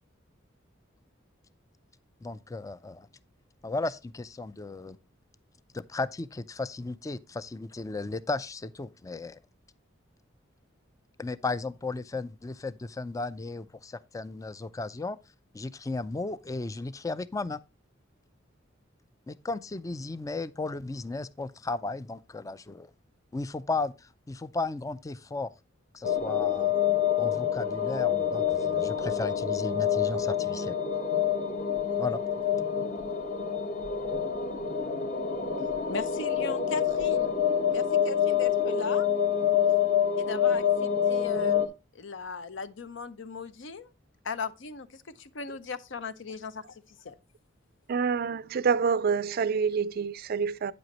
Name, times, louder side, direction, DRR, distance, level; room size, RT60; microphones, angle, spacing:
voice 1, 2.2-3.1 3.6-5.0 5.7-9.4 11.2-15.2 15.5-17.6 19.3-22.9 23.3-25.5 25.9-26.7 27.2-30.7 32.0-32.2, left 3 dB, 15° left, 0.3 m, -35 dB
sound 1, 26.0-41.7, left 8 dB, 40° left, 1.2 m, -27 dB
voice 2, 35.9-37.3 37.7-39.1 40.2-43.9 44.2-47.1, left 4 dB, 65° left, 0.7 m, -38 dB
voice 3, 47.9-50.7, right 6 dB, 50° right, 0.4 m, -27 dB
9.1 x 7.8 x 3.0 m
head